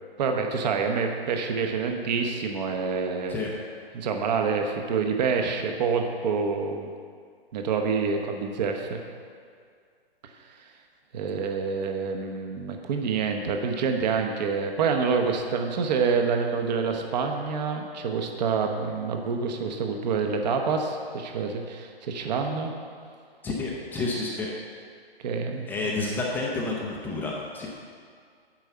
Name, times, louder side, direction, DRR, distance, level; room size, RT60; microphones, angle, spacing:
voice 1, 0.2-3.4 3.9-6.9 7.5-9.0 11.1-22.7 25.2-25.7, right 5 dB, 45° right, 4 dB, 1.0 m, -27 dB
voice 2, 23.4-24.5 25.7-27.7, left 3 dB, 5° left, -3 dB, 0.5 m, -30 dB
8.9 x 5.5 x 7.1 m, 2.1 s
hypercardioid pair, 140°, 31 cm